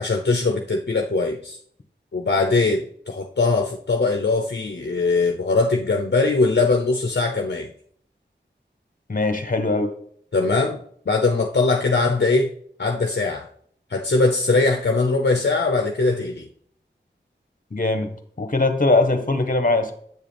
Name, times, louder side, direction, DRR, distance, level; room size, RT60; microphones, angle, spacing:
voice 1, 0.0-1.6 2.1-7.7 10.3-10.8 11.1-12.5 12.8-13.5 13.9-16.5, left 3 dB, 60° left, 3 dB, 0.7 m, -21 dB
voice 2, 9.1-9.9 17.7-19.9, left 2 dB, 45° left, 9 dB, 1.2 m, -21 dB
8.2 x 6.6 x 3.4 m, 0.62 s
wide cardioid pair, 60°, 20 cm